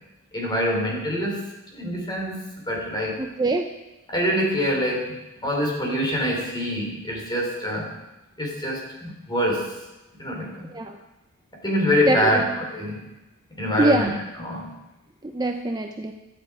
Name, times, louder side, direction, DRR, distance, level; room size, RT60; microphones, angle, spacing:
voice 1, 0.3-1.4 1.7-2.4 2.7-3.2 4.1-5.2 5.4-7.9 8.4-9.7 10.2-10.7 11.6-13.0 13.6-14.1 14.4-14.7, equal, 20° left, -1 dB, 3.8 m, -25 dB
voice 2, 3.2-3.7 10.7-11.0 12.1-12.5 13.8-14.1 15.3-16.1, right 2 dB, 20° right, 4 dB, 0.7 m, -23 dB
17.0 x 12.0 x 4.9 m, 1.0 s
head